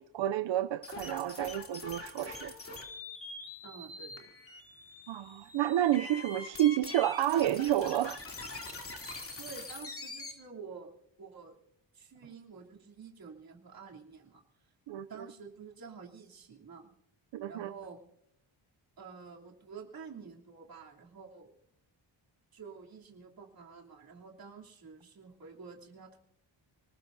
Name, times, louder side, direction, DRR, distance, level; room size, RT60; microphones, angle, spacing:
voice 1, 0.0-2.5 5.1-8.2 14.9-15.3 17.3-17.7, right 12 dB, 70° right, 0.6 m, -30 dB
sound 1, 0.8-10.3, left 3 dB, 30° left, 2.7 m, -44 dB
voice 2, 3.6-4.4 9.4-10.9 11.2-11.6 11.9-14.7 15.1-16.9 17.5-18.0 19.0-21.5 22.5-26.2, right 5 dB, 50° right, 3.0 m, -49 dB
27.0 x 19.0 x 2.6 m
wide cardioid pair, 150°, 46 cm